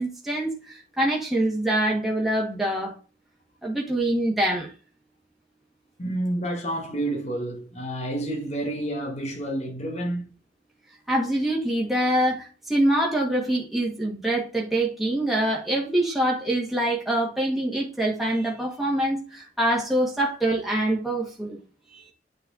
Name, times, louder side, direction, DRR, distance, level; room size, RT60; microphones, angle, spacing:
voice 1, 0.0-2.9 3.6-4.7 11.1-21.6 21.9-22.1, right 1 dB, ahead, 1.9 m, -25 dB
voice 2, 6.0-10.3, right 1 dB, 40° left, 2.0 m, -29 dB
9.2 x 4.4 x 4.1 m
head